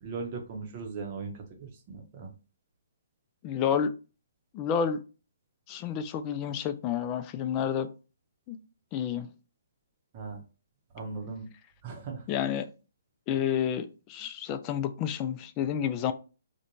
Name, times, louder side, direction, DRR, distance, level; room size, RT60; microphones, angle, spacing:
voice 1, 0.0-2.3 10.1-10.4 10.9-11.5 11.8-12.2, right 4 dB, 40° right, 0.7 m, -38 dB
voice 2, 3.4-3.9 4.5-5.0 5.7-7.9 8.5-8.6 8.9-9.3 12.3-12.7 13.3-16.1, left 8 dB, 30° left, 0.3 m, -30 dB
2.4 x 2.2 x 2.9 m
figure-of-eight pair, 135°, 0 cm